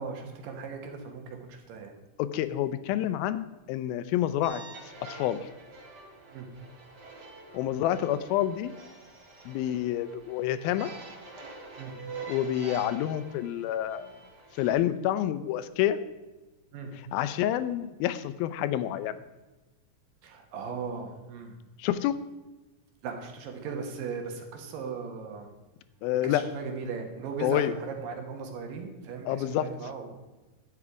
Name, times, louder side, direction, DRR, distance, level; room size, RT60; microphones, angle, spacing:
voice 1, 0.0-1.9 6.3-6.5 11.8-11.9 16.7-16.9 20.2-21.5 23.0-25.5 26.2-30.4, right 5 dB, 70° right, 3 dB, 2.9 m, -38 dB
voice 2, 2.2-5.4 7.5-8.7 9.5-10.9 12.3-14.1 14.6-16.0 17.1-19.2 21.8-22.1 26.0-26.4 27.4-27.7 29.3-29.7, left 12 dB, 85° left, 13 dB, 2.4 m, -28 dB
sound 1, 4.4-14.7, right 4 dB, 40° right, 1.5 m, -46 dB
11.0 x 8.3 x 4.9 m, 1.1 s
omnidirectional pair, 4.2 m